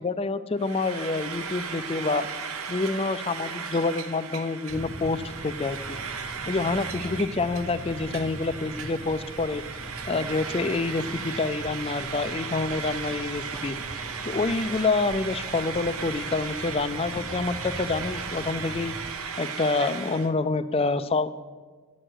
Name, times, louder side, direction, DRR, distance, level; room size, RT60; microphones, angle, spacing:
voice 1, 0.0-2.3 2.7-6.0 6.5-9.6 10.1-13.8 14.2-18.9 19.4-21.3, left 3 dB, 25° left, 13 dB, 0.4 m, -27 dB
Frying (food), 0.6-20.3, right 6 dB, 70° right, 0.8 m, -36 dB
sound 1, 4.7-19.1, right 1 dB, 10° right, 0.6 m, -41 dB
11.0 x 6.3 x 7.8 m, 1.4 s
head